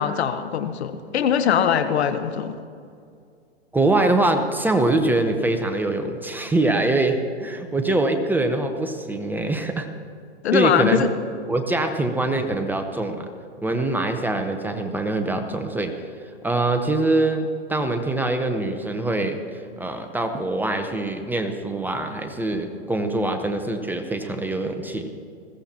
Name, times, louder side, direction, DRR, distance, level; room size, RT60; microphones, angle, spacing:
voice 1, 0.0-2.5 10.4-11.1, left 8 dB, 70° left, 10 dB, 1.1 m, -22 dB
voice 2, 3.7-9.9 10.5-11.0 11.5-13.3 13.6-15.9 16.4-25.1, right 2 dB, 5° right, 5 dB, 0.8 m, -23 dB
21.0 x 15.5 x 2.9 m, 2.3 s
hypercardioid pair, 120°, 34 cm